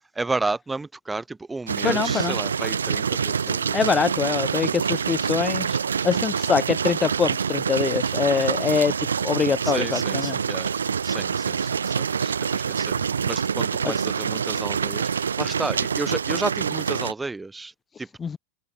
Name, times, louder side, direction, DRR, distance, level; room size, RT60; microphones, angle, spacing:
voice 1, 0.2-3.9 9.6-10.7 11.0-17.7 18.0-18.1, right 3 dB, 10° right, 7.3 m, -32 dB
sound 1, 1.7-17.1, right 6 dB, 70° right, 5.9 m, -26 dB
voice 2, 1.8-2.3 3.7-5.8 6.0-8.9 9.2-10.4 18.2-18.4, left 6 dB, 20° left, 1.5 m, -24 dB
open air
figure-of-eight pair, 90°, 0 cm